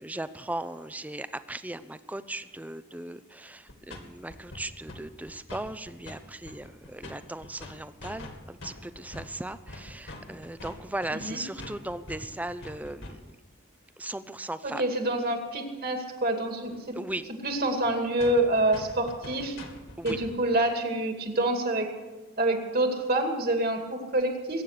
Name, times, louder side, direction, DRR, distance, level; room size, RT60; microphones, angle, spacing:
voice 1, 0.0-13.4 14.0-14.8 17.0-17.3 20.0-20.2, right 1 dB, 5° right, 13 dB, 0.5 m, -37 dB
sound 1, 3.7-4.0 4.3-5.0 5.3-6.2 6.4-13.4 16.7-16.8 17.1-17.2 17.5-17.6 17.8-17.9 18.2-20.4, left 2 dB, 65° left, 2.3 m, -44 dB
voice 2, 11.1-11.4 14.6-16.9 17.4-19.6 20.0-21.9 22.4-24.6, right 1 dB, 45° right, 4 dB, 2.4 m, -27 dB
21.5 x 9.2 x 6.6 m, 1.2 s
head